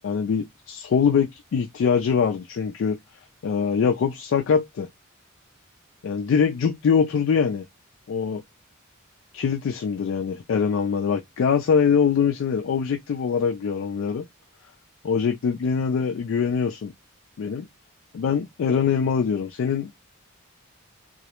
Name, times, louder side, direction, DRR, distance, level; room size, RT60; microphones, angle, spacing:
voice 1, 0.0-3.0 3.4-4.9 6.0-7.6 8.1-8.4 9.3-14.2 15.0-16.9 17.4-17.7 18.1-19.9, left 6 dB, 60° left, 0.3 m, -23 dB
2.3 x 2.0 x 2.9 m
head